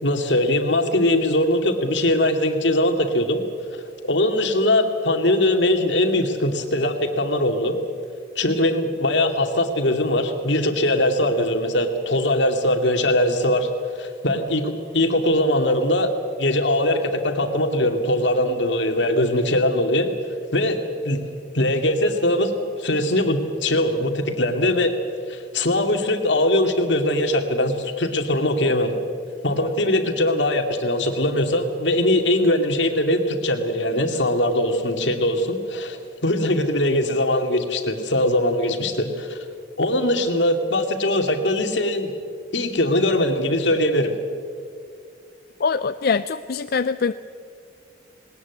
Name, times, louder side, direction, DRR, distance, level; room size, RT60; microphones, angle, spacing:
voice 1, 0.0-3.4 4.0-7.7 8.4-13.7 14.0-16.1 16.4-20.1 20.5-20.8 21.0-21.2 21.5-25.0 25.3-29.0 29.4-39.4 39.8-42.1 42.5-44.1, left 1 dB, 80° left, 5 dB, 2.3 m, -21 dB
voice 2, 45.6-47.1, left 5 dB, 55° left, 12 dB, 0.5 m, -23 dB
20.5 x 19.5 x 8.2 m, 2.3 s
head